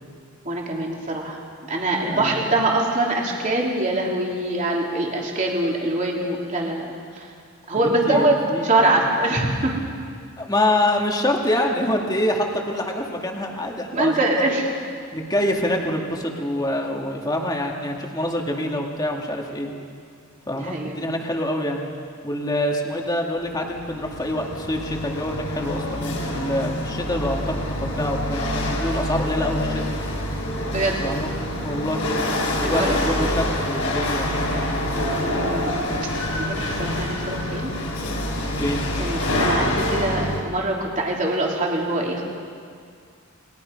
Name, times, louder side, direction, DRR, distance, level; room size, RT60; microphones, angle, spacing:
voice 1, 0.4-1.4 1.7-7.3 7.7-9.7 13.9-14.7 20.5-21.0 30.7-31.0 32.6-32.9 35.3-35.9 36.4-37.7 39.0-42.2, right 2 dB, 35° right, -2 dB, 3.3 m, -23 dB
voice 2, 2.0-2.6 7.8-9.1 10.4-14.3 15.1-19.7 20.5-21.8 22.2-29.8 31.0-31.3 31.6-32.1 32.5-34.8 38.6-38.8, left 1 dB, 20° left, 0 dB, 2.1 m, -26 dB
Chatter / Hiss / Rattle, 23.5-40.4, left 1 dB, 70° left, 5.1 m, -26 dB
29.5 x 21.0 x 5.4 m, 2.2 s
head